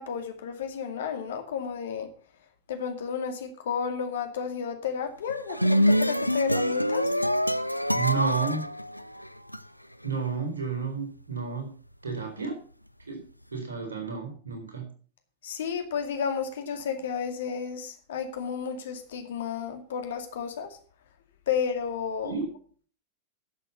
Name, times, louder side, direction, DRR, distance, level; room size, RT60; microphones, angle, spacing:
voice 1, 0.0-2.1 2.7-7.1 15.4-20.7 21.5-22.3, left 7 dB, 60° left, 6 dB, 2.2 m, -32 dB
sound 1, 5.3-9.6, equal, 90° left, 0.5 m, -25 dB
voice 2, 7.9-8.6 10.0-11.7 12.0-12.6 13.1-13.2 13.5-14.8 22.2-22.5, right 5 dB, 70° right, 3 dB, 4.2 m, -31 dB
11.0 x 7.5 x 7.0 m, 0.43 s
figure-of-eight pair, 90°, 0 cm